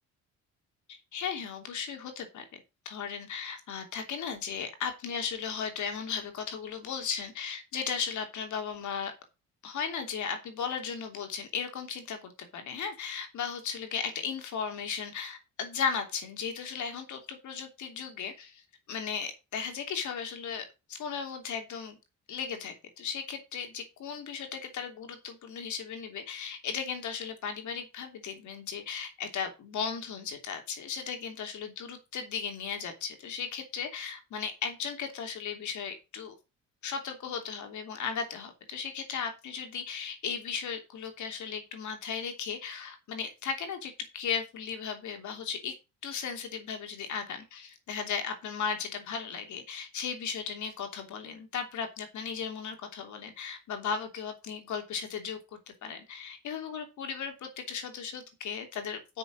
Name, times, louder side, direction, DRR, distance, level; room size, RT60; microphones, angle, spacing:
voice 1, 0.9-9.1 9.6-22.0 22.3-36.3 36.8-45.7 46.0-59.2, left 6 dB, 65° left, 5 dB, 3.1 m, -36 dB
8.2 x 6.5 x 6.3 m, 0.28 s
cardioid pair, 90°, 32 cm